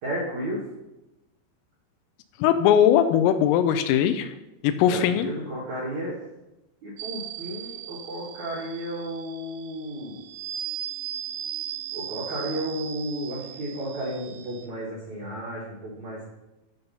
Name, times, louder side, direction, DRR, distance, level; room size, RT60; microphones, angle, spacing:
voice 1, 0.0-0.6 4.9-6.2 6.8-10.2 11.9-16.2, right 1 dB, 60° right, -5 dB, 1.9 m, -33 dB
voice 2, 2.4-4.3 4.6-5.3, left 9 dB, 85° left, 10 dB, 3.3 m, -20 dB
sound 1, 7.0-14.7, right 11 dB, 85° right, 2.7 m, -37 dB
13.0 x 4.4 x 5.5 m, 0.95 s
omnidirectional pair, 5.9 m